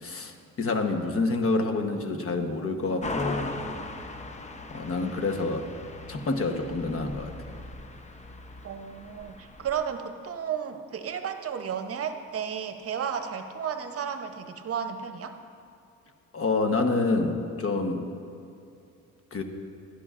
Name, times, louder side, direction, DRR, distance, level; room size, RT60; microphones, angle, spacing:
voice 1, 0.0-3.5 4.7-5.7 6.1-7.3 16.3-18.0 19.3-19.4, left 3 dB, 45° left, 5 dB, 1.1 m, -27 dB
sound 1, 3.0-9.8, left 2 dB, 25° left, 0.7 m, -39 dB
voice 2, 8.6-15.4, right 7 dB, 50° right, 7 dB, 0.8 m, -33 dB
16.5 x 11.5 x 2.5 m, 2.7 s
cardioid pair, 90°, 30 cm